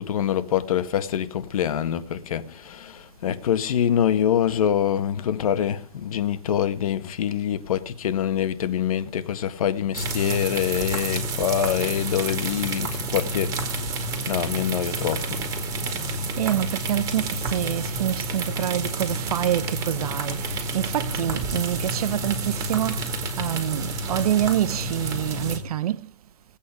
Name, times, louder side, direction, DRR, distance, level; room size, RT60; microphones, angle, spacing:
voice 1, 0.0-13.8 14.3-15.4, left 9 dB, 60° left, 1.6 m, -25 dB
sound 1, 9.9-25.6, right 2 dB, 15° right, 2.2 m, -29 dB
voice 2, 16.1-26.1, right 12 dB, 65° right, 0.8 m, -27 dB
18.5 x 8.7 x 5.1 m
hypercardioid pair, 175°, 20 cm